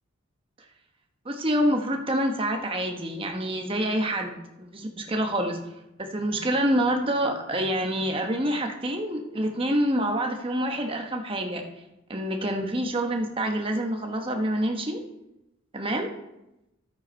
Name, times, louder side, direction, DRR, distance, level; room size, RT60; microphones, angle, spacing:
voice 1, 1.2-5.6 6.0-11.6 12.1-15.0 15.7-16.1, right 1 dB, 25° right, 3 dB, 1.1 m, -27 dB
13.0 x 8.1 x 4.4 m, 0.91 s
head